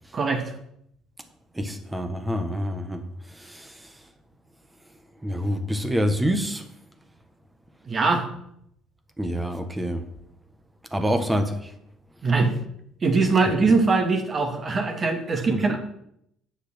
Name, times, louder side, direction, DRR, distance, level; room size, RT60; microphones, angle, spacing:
voice 1, 1.5-4.0 5.2-6.6 9.2-10.1 10.9-11.7 15.5-15.8, equal, 15° right, 1.5 m, -27 dB
voice 2, 7.9-8.2 12.2-12.5 13.0-15.8, right 4 dB, 40° right, 2.2 m, -22 dB
7.9 x 6.5 x 6.3 m
hypercardioid pair, 65°, 0 cm